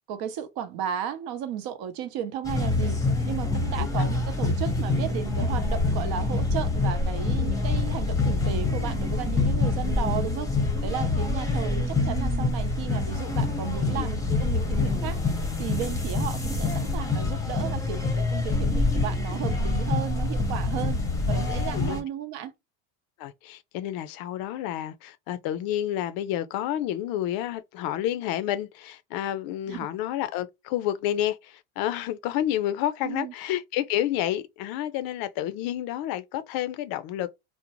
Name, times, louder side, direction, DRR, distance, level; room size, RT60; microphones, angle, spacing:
voice 1, 0.1-10.5 10.8-15.2 15.6-21.0 21.3-22.5 29.7-29.9 33.0-33.3, right 9 dB, 60° right, 0.7 m, -34 dB
sound 1, 2.4-22.0, left 3 dB, 10° left, 0.7 m, -26 dB
voice 2, 23.2-37.3, left 12 dB, 60° left, 0.5 m, -30 dB
2.5 x 2.0 x 2.9 m
supercardioid pair, 100°, 41 cm